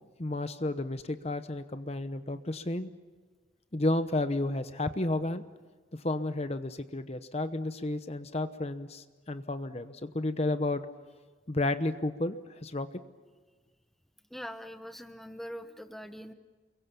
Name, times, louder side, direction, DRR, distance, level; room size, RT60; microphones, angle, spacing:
voice 1, 0.2-2.9 3.7-5.4 5.9-10.9 11.5-12.9, left 2 dB, 35° left, 10 dB, 0.9 m, -32 dB
voice 2, 14.3-16.3, equal, ahead, 8 dB, 1.0 m, -42 dB
30.0 x 22.5 x 7.0 m, 1.4 s
head